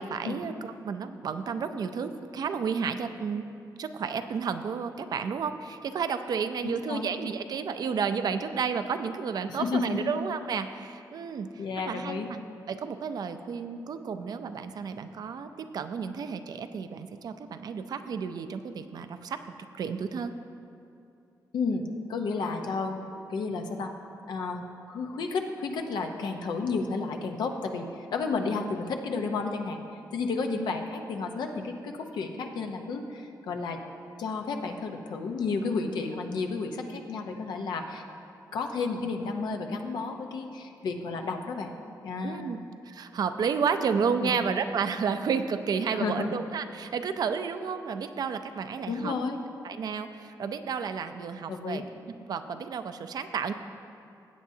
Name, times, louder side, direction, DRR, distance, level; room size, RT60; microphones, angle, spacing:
voice 1, 0.0-3.4 3.8-11.5 11.9-12.4 12.7-15.5 15.7-19.4 19.8-20.3 42.2-42.6 42.9-49.1 49.6-51.8 52.3-53.5, right 6 dB, 65° right, 9 dB, 0.5 m, -31 dB
voice 2, 6.6-7.1 9.5-10.1 11.6-12.3 21.5-23.0 23.3-23.9 24.3-29.8 30.1-33.8 34.2-38.0 38.5-41.7 42.0-42.6 44.2-44.4 45.9-46.4 48.9-49.4 51.5-51.8, left 4 dB, 90° left, 4 dB, 0.8 m, -32 dB
16.5 x 8.5 x 2.8 m, 2.6 s
cardioid pair, 105°, 7 cm